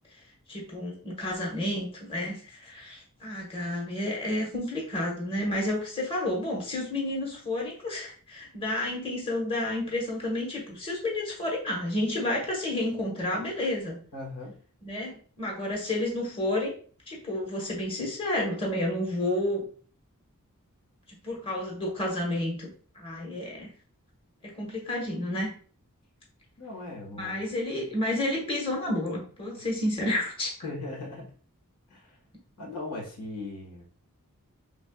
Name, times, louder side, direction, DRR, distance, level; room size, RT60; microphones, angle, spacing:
voice 1, 0.5-14.0 14.8-16.7 17.1-19.6 21.2-22.7 22.9-23.7 24.4-25.5 27.1-30.5, left 1 dB, 25° left, -1 dB, 1.1 m, -30 dB
voice 2, 14.1-14.5 26.6-27.5 30.6-31.3 31.9-32.0 32.6-33.8, left 2 dB, 90° left, -1 dB, 1.5 m, -38 dB
5.1 x 3.4 x 2.3 m, 0.43 s
head